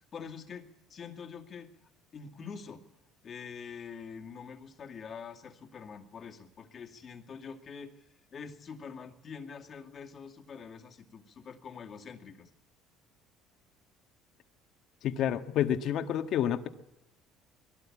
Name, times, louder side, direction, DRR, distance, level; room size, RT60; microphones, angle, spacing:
voice 1, 0.1-1.7 2.1-2.8 3.2-12.5, left 6 dB, 35° left, 3 dB, 2.3 m, -45 dB
voice 2, 15.0-16.7, left 10 dB, 55° left, 7 dB, 1.6 m, -29 dB
22.0 x 17.0 x 8.6 m, 0.87 s
cardioid pair, 130°, 0 cm